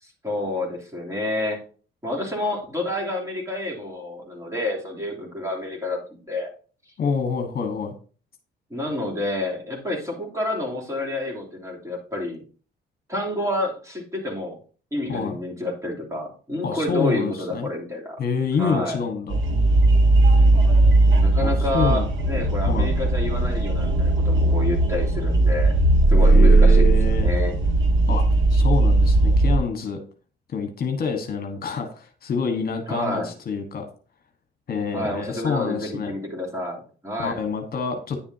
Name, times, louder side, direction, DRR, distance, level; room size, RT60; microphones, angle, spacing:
voice 1, 0.0-1.6 2.0-6.5 8.7-12.4 13.1-14.6 14.9-18.2 18.6-19.0 21.1-25.7 26.1-26.9 27.2-27.5 32.9-33.3 34.9-37.4, left 1 dB, 15° right, -2 dB, 3.2 m, -29 dB
voice 2, 7.0-7.9 15.1-15.4 16.6-17.7 18.2-19.4 21.4-22.0 22.7-22.9 26.3-27.3 28.1-28.2 28.5-30.0 30.5-33.9 34.7-36.1 37.2-38.2, left 5 dB, 50° left, 5 dB, 1.5 m, -27 dB
sound 1, 19.3-29.6, right 2 dB, 75° right, 2.0 m, -18 dB
10.0 x 7.2 x 2.8 m, 0.40 s
cardioid pair, 90°, 20 cm